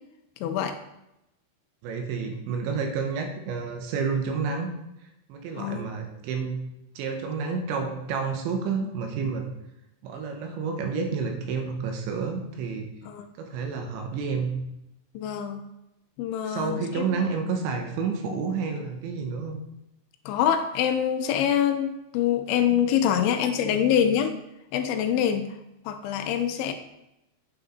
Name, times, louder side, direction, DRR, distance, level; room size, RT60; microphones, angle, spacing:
voice 1, 0.4-0.8 5.6-5.9 13.1-13.3 15.1-15.7 16.2-17.2 20.3-24.4 24.7-25.6 25.9-26.7, left 9 dB, 80° left, 7 dB, 3.0 m, -25 dB
voice 2, 1.8-4.7 5.3-6.6 7.0-9.5 10.0-12.9 13.4-14.5 16.4-19.6, right 5 dB, 80° right, 4 dB, 3.2 m, -30 dB
8.7 x 7.0 x 3.9 m, 0.86 s
omnidirectional pair, 5.5 m